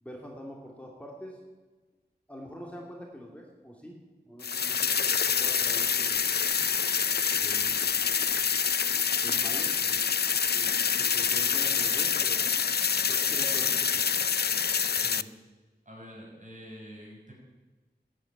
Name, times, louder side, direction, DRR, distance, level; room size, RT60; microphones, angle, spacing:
voice 1, 0.0-1.4 2.3-4.0 4.3-5.1 5.4-6.2 7.3-7.9 9.2-10.0 10.5-12.5 13.1-14.2, equal, 5° left, -1 dB, 2.6 m, -44 dB
sound 1, 4.4-15.2, left 6 dB, 70° left, 0.4 m, -26 dB
voice 2, 15.8-17.3, equal, 45° right, -3 dB, 6.3 m, -46 dB
13.0 x 8.8 x 8.9 m, 1.3 s
wide cardioid pair, 45°, 17 cm